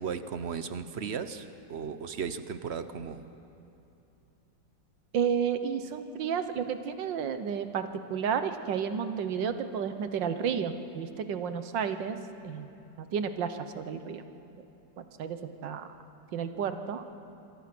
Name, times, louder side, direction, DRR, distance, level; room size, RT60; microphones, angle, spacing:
voice 1, 0.0-3.3, right 6 dB, 50° right, 11 dB, 0.8 m, -36 dB
voice 2, 5.1-12.2 12.4-12.7 13.0-14.2 15.0-15.9 16.3-17.0, right 7 dB, 80° right, 9 dB, 1.7 m, -32 dB
27.0 x 22.5 x 6.1 m, 2.8 s
omnidirectional pair, 2.0 m